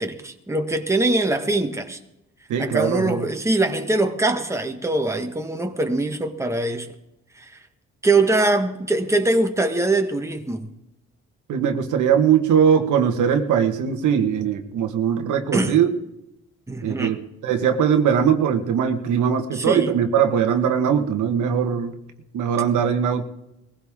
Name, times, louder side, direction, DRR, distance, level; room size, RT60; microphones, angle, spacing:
voice 1, 0.0-2.0 2.6-6.9 7.4-7.5 8.0-10.7 15.5-15.7 16.7-17.1 19.5-19.9, right 2 dB, 10° right, 1.6 m, -22 dB
voice 2, 2.5-3.2 11.5-15.9 16.8-22.0 22.3-23.2, right 8 dB, 80° right, 1.6 m, -20 dB
20.5 x 16.0 x 3.7 m
cardioid pair, 90°, 30 cm